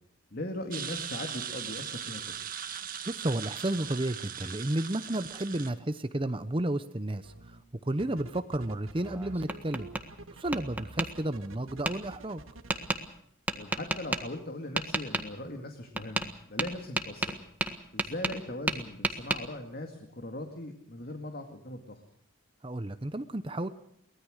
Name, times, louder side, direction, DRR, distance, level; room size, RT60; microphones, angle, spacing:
voice 1, 0.3-2.3 8.0-8.2 13.5-17.4 17.9-22.0, left 1 dB, 45° left, 5 dB, 2.2 m, -39 dB
sound 1, 0.7-5.7, right 8 dB, 40° right, 1.8 m, -39 dB
voice 2, 3.0-12.4 22.6-23.7, right 1 dB, 25° right, 11 dB, 0.8 m, -32 dB
sound 2, 7.2-7.6 8.0-12.9, right 2 dB, 80° right, 1.8 m, -47 dB
Tap, 9.0-10.0 10.5-11.1 11.8-11.9 12.7-13.0 13.5-14.2 14.8-15.2 16.0-16.3 16.6-18.4 18.7-19.4, right 2 dB, 10° right, 1.5 m, -31 dB
23.5 x 19.5 x 6.5 m, 0.69 s
head